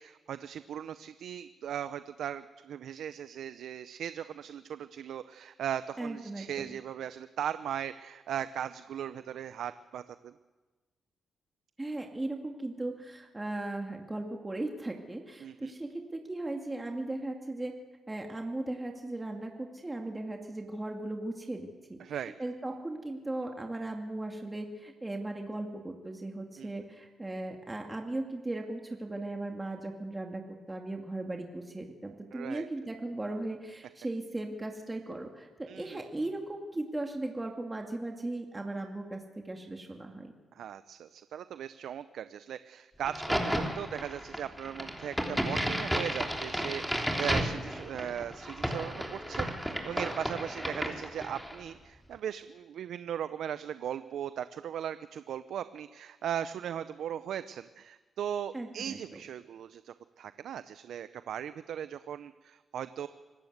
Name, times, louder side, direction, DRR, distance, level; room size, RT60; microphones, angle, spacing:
voice 1, 0.0-10.3 15.4-15.7 22.0-22.3 26.6-26.7 32.3-32.7 35.7-36.0 40.5-63.1, right 9 dB, 75° right, 13 dB, 0.6 m, -38 dB
voice 2, 6.0-6.7 11.8-17.7 18.1-40.3 58.5-59.2, right 2 dB, 20° right, 2 dB, 2.5 m, -37 dB
Crack, 43.0-51.6, equal, ahead, 3.5 m, -33 dB
25.5 x 14.5 x 8.1 m, 1.3 s
cardioid pair, 65°, 0 cm